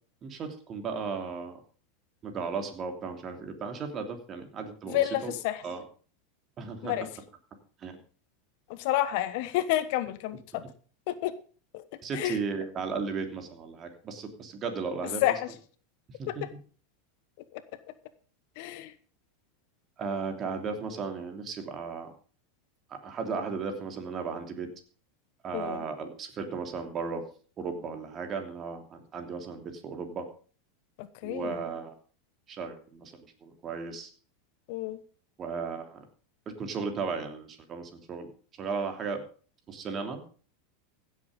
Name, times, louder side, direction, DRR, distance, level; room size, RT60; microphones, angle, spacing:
voice 1, 0.2-1.6 2.2-5.3 5.6-5.8 6.6-7.1 7.8-8.0 12.0-15.2 16.1-16.4 20.0-22.1 22.9-24.7 25.4-27.2 27.6-30.3 31.2-31.9 32.5-33.1 33.4-34.1 35.4-36.0 36.6-38.3 38.6-39.2 39.7-40.2, right 5 dB, 35° right, 5 dB, 3.1 m, -35 dB
voice 2, 4.9-5.6 6.8-7.1 8.7-10.6 11.1-11.3 11.7-11.8 12.1-12.4 15.2-15.5 16.3-16.5 17.5-17.6 18.6-18.9 25.5-25.9 31.0-31.6 34.7-35.0, left 13 dB, 60° left, 13 dB, 1.1 m, -30 dB
16.0 x 7.6 x 5.2 m, 0.41 s
hypercardioid pair, 95°, 0 cm